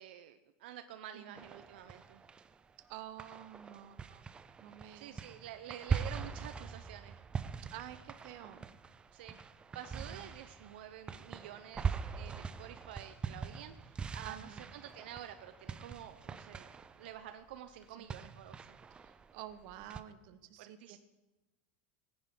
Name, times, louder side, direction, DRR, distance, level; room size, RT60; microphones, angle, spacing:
voice 1, 0.0-2.2 4.9-7.2 9.1-9.4 9.7-18.8 20.6-21.0, right 11 dB, 80° right, 9 dB, 0.8 m, -49 dB
sound 1, 1.4-2.8 3.2-20.0, right 6 dB, 15° right, 0.5 m, -42 dB
voice 2, 2.9-4.2 4.6-5.2 7.7-8.7 9.9-10.3 14.2-14.6 18.0-18.1 19.0-21.0, right 12 dB, 60° right, 11 dB, 1.1 m, -49 dB
19.0 x 10.5 x 3.8 m, 1.1 s
supercardioid pair, 140°, 5 cm